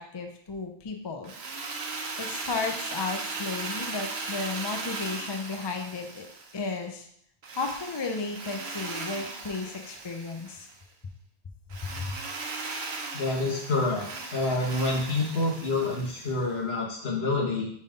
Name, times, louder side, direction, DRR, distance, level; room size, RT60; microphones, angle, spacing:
voice 1, 0.0-1.3 2.2-6.3 6.5-7.1 7.6-10.7 12.0-12.2, left 4 dB, 30° left, 4 dB, 0.6 m, -34 dB
Drill, 1.2-6.8 7.4-10.7 11.7-16.5, right 3 dB, 75° right, 1.1 m, -37 dB
voice 2, 13.1-14.0 14.3-17.7, left 2 dB, 75° left, -2 dB, 1.7 m, -27 dB
5.6 x 4.2 x 5.2 m, 0.68 s
omnidirectional pair, 1.1 m